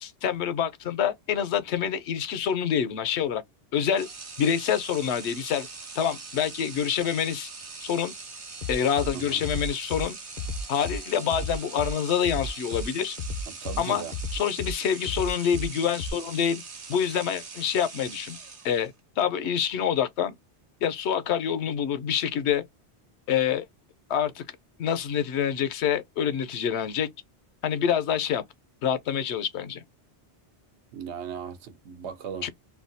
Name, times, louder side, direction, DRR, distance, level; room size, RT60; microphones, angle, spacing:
voice 1, 0.0-3.4 3.7-4.1 4.4-5.7 6.0-7.5 7.8-8.1 8.7-10.2 10.7-13.2 13.8-14.0 14.3-16.6 16.9-18.4 18.6-20.4 20.8-22.6 23.3-23.7 24.1-24.4 24.8-27.1 27.6-28.4 28.8-29.8 32.4-32.5, left 8 dB, 75° left, 0.9 m, -26 dB
sound 1, 3.9-19.0, right 4 dB, 55° right, 1.1 m, -42 dB
Bass drum, 8.6-9.1 9.4-10.0 10.4-11.0 11.3-11.9 12.2-12.8 13.2-13.8 14.1-14.7 15.1-15.7 16.0-16.1, left 2 dB, 60° left, 0.5 m, -33 dB
voice 2, 13.5-14.1 30.9-32.5, right 8 dB, 80° right, 1.0 m, -37 dB
3.3 x 2.2 x 2.6 m
omnidirectional pair, 1.1 m